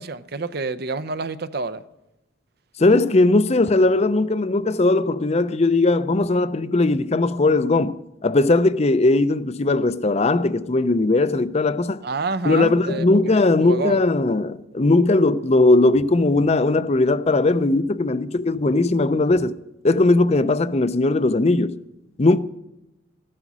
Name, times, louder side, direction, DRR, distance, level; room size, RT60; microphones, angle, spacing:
voice 1, 0.0-1.8 12.0-13.2 13.6-14.0, right 3 dB, 55° right, 0.6 m, -28 dB
voice 2, 2.8-12.0 12.4-19.5 19.8-21.8 22.2-22.4, left 2 dB, 35° left, 0.5 m, -19 dB
15.0 x 12.0 x 6.2 m
head